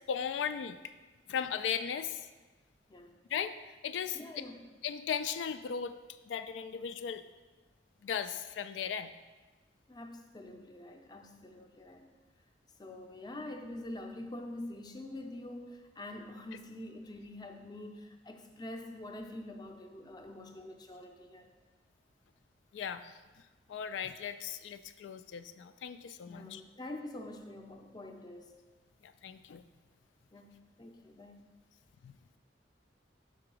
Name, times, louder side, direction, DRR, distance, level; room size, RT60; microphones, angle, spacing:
voice 1, 0.1-0.9 1.3-2.3 3.3-4.2 4.8-6.0 6.3-7.2 8.0-9.1 22.7-23.2 23.7-26.6 29.0-29.6 32.0-32.1, left 7 dB, 90° left, 10 dB, 0.3 m, -37 dB
voice 2, 4.1-4.7 9.9-12.1 12.8-21.5 26.3-28.5 30.3-31.5, left 1 dB, 25° left, 4 dB, 0.5 m, -46 dB
5.9 x 3.8 x 6.1 m, 1.3 s
head